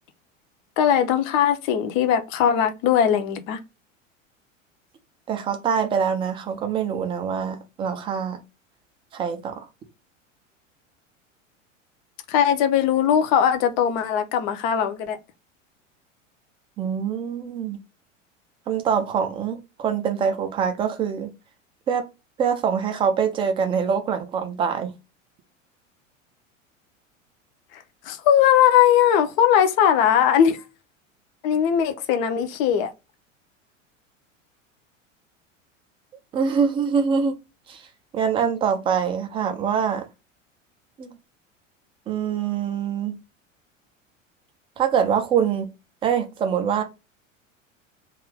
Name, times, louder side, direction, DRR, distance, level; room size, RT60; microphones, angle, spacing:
voice 1, 0.8-3.6 12.3-15.2 27.7-30.6 31.4-32.9, left 9 dB, 40° left, 0.5 m, -20 dB
voice 2, 5.3-8.4 9.1-9.7 16.8-17.8 18.7-21.3 21.9-22.0 22.4-24.9 36.3-37.3 37.7-37.8 38.1-40.0 41.0-41.2 42.1-43.2 44.8-45.7 46.0-46.8, right 7 dB, 15° right, 0.3 m, -24 dB
2.4 x 2.4 x 3.2 m
figure-of-eight pair, 80°, 39 cm